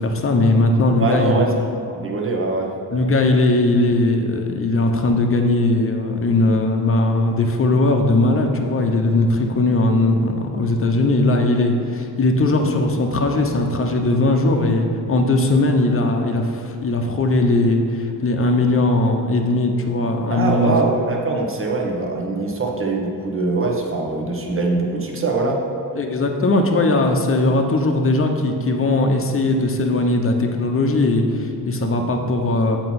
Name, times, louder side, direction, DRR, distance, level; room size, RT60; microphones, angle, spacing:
voice 1, 0.0-1.4 2.9-20.7 26.0-32.8, left 2 dB, 30° left, 3 dB, 1.0 m, -19 dB
voice 2, 1.0-1.5 1.9-2.7 20.3-25.6, right 3 dB, 30° right, 0 dB, 1.3 m, -22 dB
7.7 x 4.5 x 6.0 m, 2.5 s
cardioid pair, 85°, 42 cm